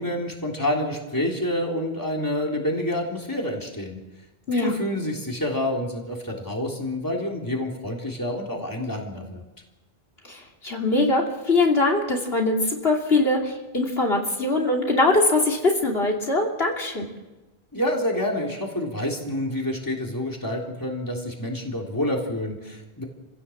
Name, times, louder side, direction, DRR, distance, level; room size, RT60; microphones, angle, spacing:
voice 1, 0.0-4.0 4.5-9.4 17.7-23.0, left 1 dB, 20° left, 0 dB, 3.6 m, -28 dB
voice 2, 10.2-17.1, left 2 dB, 75° left, 0 dB, 3.3 m, -22 dB
28.5 x 16.5 x 7.3 m, 1.1 s
omnidirectional pair, 1.0 m